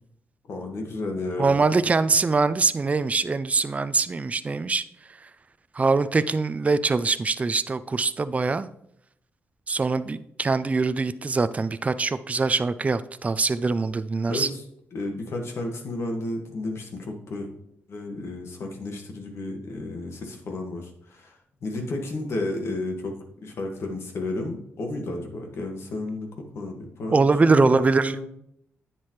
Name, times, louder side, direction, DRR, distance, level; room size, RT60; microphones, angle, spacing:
voice 1, 0.5-1.7 14.3-14.6 14.9-17.5 17.9-21.4 21.6-28.3, left 2 dB, 65° left, 2 dB, 1.9 m, -32 dB
voice 2, 1.4-4.8 5.7-8.7 9.7-14.5 27.1-28.2, right 4 dB, 30° right, 13 dB, 0.4 m, -23 dB
10.0 x 7.6 x 3.2 m, 0.74 s
cardioid pair, 70°, 5 cm